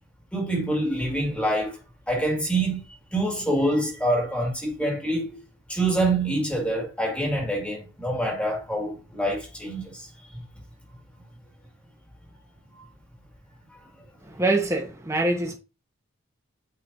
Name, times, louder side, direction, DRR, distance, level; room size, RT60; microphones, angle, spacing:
voice 1, 0.3-1.8 2.1-2.8 3.1-5.4 5.7-10.1, right 1 dB, 5° left, 2.0 m, -26 dB
voice 2, 14.2-15.5, right 2 dB, 15° right, 1.3 m, -24 dB
8.8 x 5.4 x 2.7 m
head